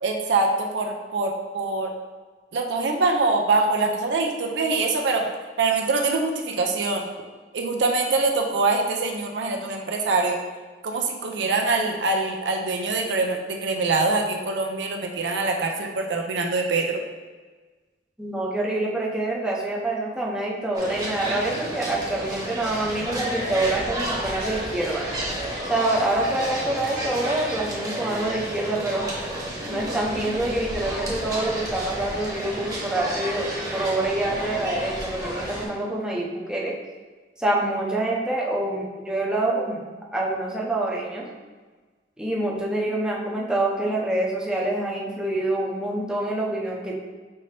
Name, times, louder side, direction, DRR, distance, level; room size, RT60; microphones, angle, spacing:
voice 1, 0.0-1.9 2.5-5.3 5.6-7.1 7.5-10.4 10.8-17.0, right 3 dB, 80° right, 2 dB, 0.6 m, -24 dB
voice 2, 18.2-25.0 25.6-29.1 29.7-36.7 37.4-39.8 40.1-41.3 42.2-47.0, right 2 dB, 5° right, -4 dB, 0.6 m, -26 dB
sound 1, 20.7-35.7, right 1 dB, 20° right, 1.0 m, -31 dB
5.5 x 2.7 x 3.2 m, 1.3 s
head